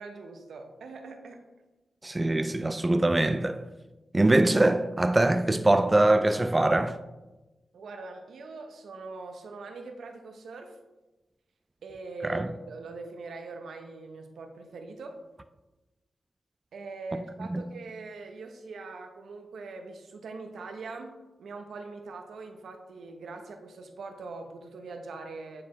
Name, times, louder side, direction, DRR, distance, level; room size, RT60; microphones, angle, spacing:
voice 1, 0.0-1.4 7.7-10.8 11.8-15.1 16.7-25.6, right 3 dB, 80° right, 0.8 m, -42 dB
voice 2, 2.0-3.7 4.1-7.0 12.2-12.5 17.5-17.7, right 2 dB, 25° right, 0.4 m, -23 dB
9.6 x 4.3 x 3.0 m
supercardioid pair, 40°, 0 cm